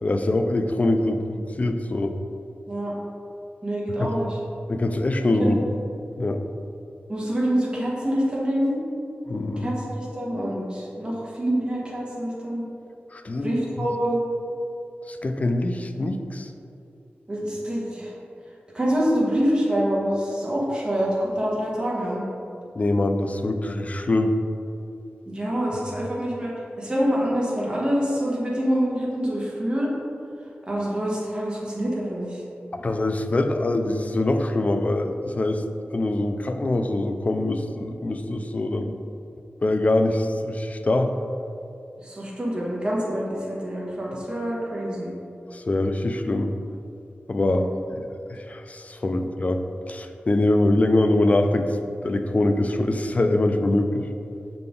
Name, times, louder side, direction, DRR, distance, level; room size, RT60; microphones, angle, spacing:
voice 1, 0.0-2.1 4.0-4.1 4.7-5.6 6.2-6.4 9.3-9.7 13.1-13.9 15.1-16.5 22.8-24.4 32.7-39.0 39.6-41.2 45.5-46.5 47.3-47.6 47.9-48.0 48.3-49.6 49.9-51.8 52.0-54.1, left 2 dB, 40° left, 6 dB, 0.4 m, -23 dB
voice 2, 3.6-4.4 5.4-5.6 7.1-8.8 9.6-12.6 13.4-14.2 17.3-18.1 18.7-22.2 25.3-26.5 26.8-29.9 30.7-32.4 42.0-45.1 47.3-47.7, equal, 25° right, -5 dB, 1.4 m, -26 dB
6.6 x 4.0 x 3.7 m, 2.6 s
wide cardioid pair, 85°, 4 cm